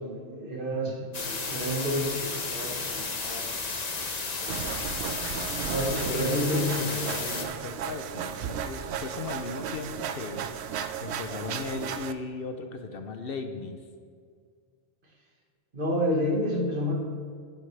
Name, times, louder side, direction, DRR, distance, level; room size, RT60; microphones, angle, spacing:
voice 1, 0.0-3.5 4.2-4.6 5.6-6.8 15.7-16.9, equal, 50° right, 0 dB, 1.7 m, -30 dB
voice 2, 0.6-1.1 6.1-10.5 11.0-13.8, left 4 dB, 60° left, 6 dB, 0.9 m, -37 dB
sound 1, 1.1-7.5, left 4 dB, 40° left, 0.9 m, -33 dB
sound 2, 4.5-12.1, right 8 dB, 75° right, 0.8 m, -35 dB
11.0 x 9.4 x 3.3 m, 2.1 s
omnidirectional pair, 1.1 m